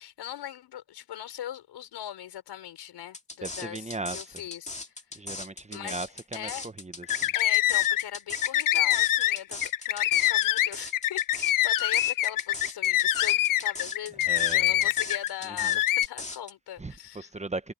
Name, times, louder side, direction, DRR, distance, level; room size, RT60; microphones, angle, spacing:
voice 1, 0.0-4.9 5.7-6.0 6.3-6.7 7.3-17.3, left 11 dB, 90° left, 6.2 m, -40 dB
sound 1, 3.1-16.5, left 2 dB, 15° left, 2.3 m, -39 dB
voice 2, 3.4-4.4 5.1-6.5 6.8-7.3 14.3-14.9 15.4-15.8 16.8-17.7, right 2 dB, 15° right, 0.9 m, -38 dB
sound 2, 7.0-8.0 8.3-15.3 15.6-16.1, left 14 dB, 55° left, 0.4 m, -24 dB
cardioid pair, 100°, 39 cm